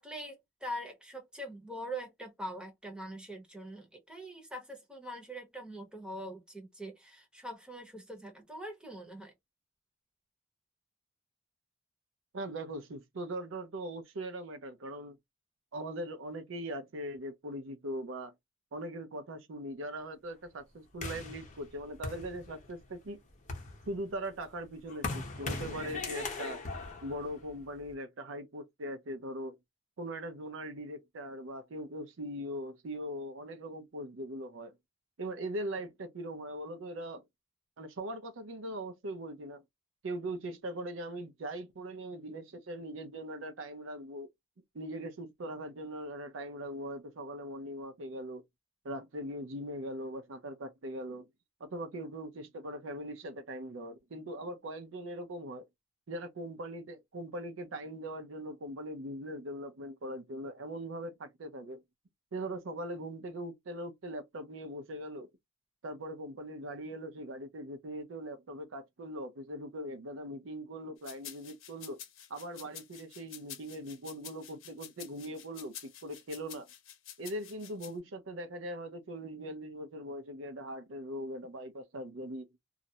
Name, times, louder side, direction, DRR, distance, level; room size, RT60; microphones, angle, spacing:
voice 1, 0.0-9.3, equal, 5° right, 0.8 m, -43 dB
voice 2, 12.3-15.2 15.7-18.3 18.7-23.2 23.9-26.6 27.0-29.6 30.0-34.7 35.2-37.2 37.8-39.6 40.0-44.3 44.7-48.4 48.8-51.3 51.6-55.7 56.1-61.8 62.3-65.3 65.8-72.0 72.3-76.7 77.2-82.5, right 1 dB, 75° right, 0.5 m, -40 dB
sound 1, 21.0-22.8 23.3-27.9, left 3 dB, 40° left, 0.8 m, -40 dB
sound 2, 71.0-77.9, left 9 dB, 80° left, 0.7 m, -48 dB
2.4 x 2.0 x 2.7 m
head